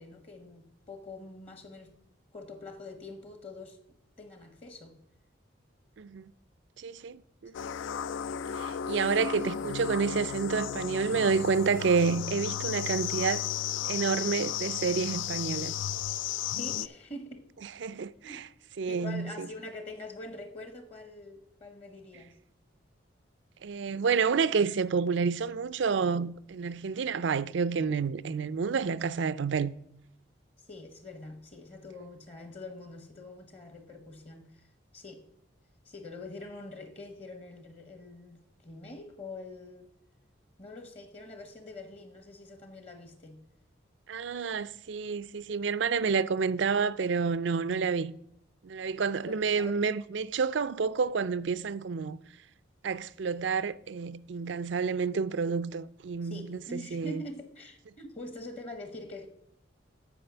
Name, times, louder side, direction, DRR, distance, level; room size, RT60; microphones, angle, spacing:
voice 1, 0.0-1.9 2.3-3.8 4.2-5.0 16.6-17.5 18.2-18.4 18.9-22.3 30.6-34.7 34.9-35.2 35.8-39.9 40.6-43.5 49.2-49.8 56.2-59.3, left 2 dB, 30° left, 0.9 m, -45 dB
voice 2, 6.8-7.7 8.6-13.4 13.8-15.7 17.8-18.5 18.8-19.5 23.6-29.7 44.1-48.1 48.6-52.2 52.8-57.2, right 5 dB, 70° right, 0.4 m, -29 dB
sound 1, 7.5-16.9, left 9 dB, 75° left, 0.3 m, -34 dB
8.8 x 4.9 x 6.8 m
head